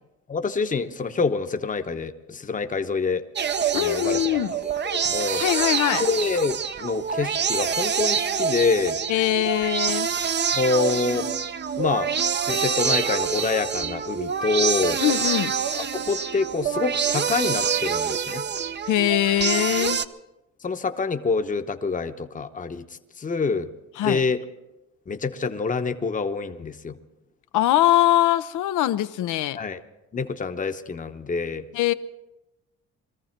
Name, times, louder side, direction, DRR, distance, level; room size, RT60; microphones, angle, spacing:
voice 1, 0.3-3.3 3.7-4.4 4.9-5.4 6.0-9.0 10.5-11.3 11.8-12.1 12.5-15.0 15.7-18.4 20.6-22.8 23.2-23.7 24.0-24.4 25.1-27.0 29.5-29.8 30.1-31.7, left 4 dB, 25° left, 0.9 m, -26 dB
sound 1, 3.4-20.1, right 7 dB, 35° right, 0.6 m, -26 dB
voice 2, 3.7-4.5 5.4-6.1 9.1-10.1 15.0-15.5 18.9-20.0 24.0-24.2 27.5-29.6 31.7-31.9, left 13 dB, 80° left, 0.7 m, -22 dB
22.0 x 14.0 x 4.4 m
cardioid pair, 90°, 30 cm